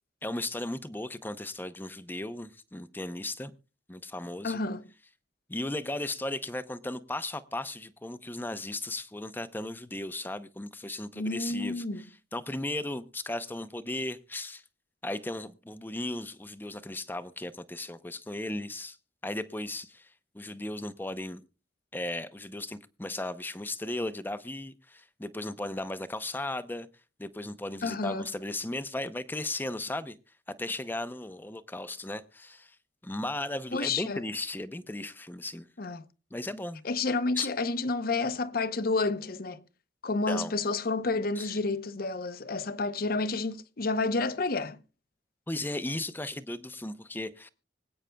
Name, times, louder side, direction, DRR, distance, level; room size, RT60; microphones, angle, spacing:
voice 1, 0.2-3.5 3.9-4.6 5.5-12.1 12.3-14.6 15.0-19.0 19.2-21.4 21.9-26.9 27.2-30.2 30.6-32.8 33.0-35.7 36.3-36.8 37.4-37.5 40.3-40.5 41.4-41.5 45.5-47.5, left 1 dB, 10° left, 0.6 m, -36 dB
voice 2, 4.4-4.8 11.2-12.0 27.8-28.3 33.7-34.2 35.8-36.0 36.8-39.6 40.0-44.8, left 3 dB, 55° left, 0.7 m, -30 dB
25.0 x 8.8 x 2.3 m
head